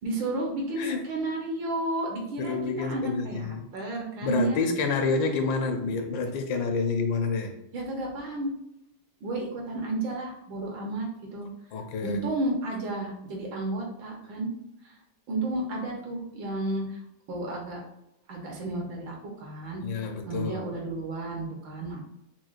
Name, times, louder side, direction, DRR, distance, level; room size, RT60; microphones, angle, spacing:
voice 1, 0.0-4.6 7.7-8.5 9.2-11.5 12.0-14.5 15.3-16.8 17.3-17.8 18.3-22.0, right 2 dB, 75° right, -1 dB, 1.6 m, -32 dB
voice 2, 0.8-1.1 2.4-3.7 4.2-7.5 11.7-12.3 19.8-20.6, left 4 dB, 75° left, 5 dB, 1.3 m, -28 dB
5.9 x 2.1 x 2.4 m, 0.84 s
omnidirectional pair, 2.1 m